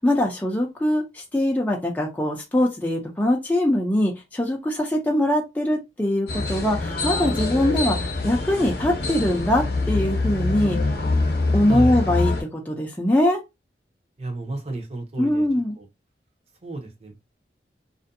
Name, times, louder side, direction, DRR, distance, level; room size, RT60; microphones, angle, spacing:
voice 1, 0.0-10.8 11.5-13.4 15.2-15.8, left 1 dB, 10° left, 0.4 m, -22 dB
sound 1, 6.3-12.4, left 3 dB, 55° left, 0.8 m, -25 dB
voice 2, 11.7-12.0 14.2-15.5 15.8-15.9 16.6-17.1, right 2 dB, 35° right, 0.7 m, -31 dB
2.5 x 2.1 x 2.6 m
head